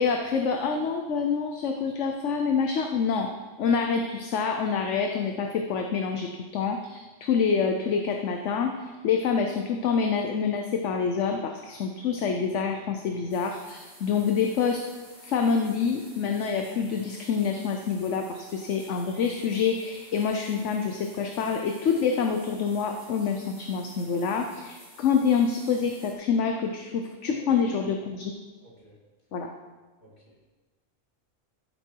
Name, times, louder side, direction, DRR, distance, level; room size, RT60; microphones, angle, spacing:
voice 1, 0.0-3.3 3.6-14.8 15.2-28.3 29.3-29.5, left 6 dB, 65° left, 4 dB, 1.1 m, -27 dB
sound 1, 13.3-26.1, equal, 80° right, 3.9 m, -51 dB
voice 2, 27.3-27.9 28.6-29.0 30.0-30.4, equal, 40° left, -4 dB, 3.0 m, -48 dB
14.5 x 7.4 x 4.6 m, 1.3 s
omnidirectional pair, 1.4 m